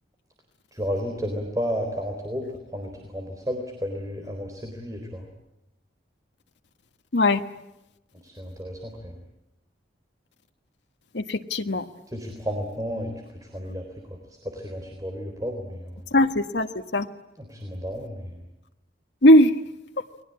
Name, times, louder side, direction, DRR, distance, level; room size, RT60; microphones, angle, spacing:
voice 1, 0.7-2.5 2.7-5.3 8.2-9.2 12.1-13.1 13.4-16.0 17.4-18.4, equal, 20° right, 3 dB, 3.9 m, -32 dB
voice 2, 11.1-11.8 16.1-16.7 16.9-17.1 19.2-19.5, left 1 dB, 85° left, 6 dB, 1.3 m, -18 dB
30.0 x 21.5 x 8.7 m, 0.92 s
head